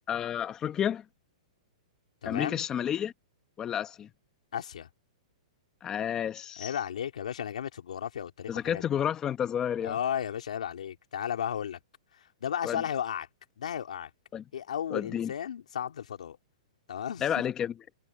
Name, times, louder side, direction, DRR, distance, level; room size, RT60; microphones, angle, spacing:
voice 1, 0.1-1.0 2.2-3.1 3.6-4.1 5.8-6.7 8.5-10.0 12.6-12.8 14.3-14.4 14.9-15.3 17.2-17.7, left 9 dB, 15° left, 0.8 m, -30 dB
voice 2, 2.2-2.7 4.5-4.9 6.6-8.8 9.8-11.8 12.2-13.3 13.6-14.1 14.5-16.4 16.9-17.4, left 9 dB, 85° left, 3.2 m, -34 dB
hypercardioid pair, 160°, 4 cm